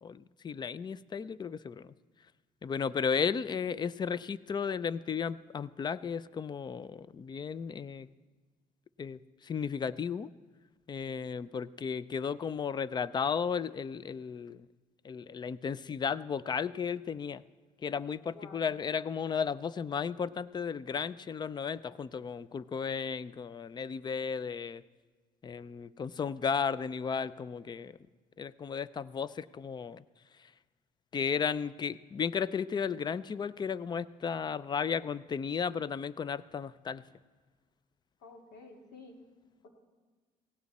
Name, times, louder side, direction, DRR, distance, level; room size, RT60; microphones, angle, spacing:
voice 1, 0.0-1.8 2.6-8.1 9.0-9.2 9.4-10.3 10.9-14.6 15.0-17.4 17.8-24.8 25.4-27.9 28.4-30.0 31.1-37.0, left 6 dB, 25° left, 18 dB, 0.4 m, -34 dB
voice 2, 18.3-18.7 38.2-39.2 39.6-39.7, left 3 dB, 80° left, 2 dB, 2.5 m, -51 dB
17.5 x 16.0 x 4.2 m, 1.4 s
cardioid pair, 110°, 17 cm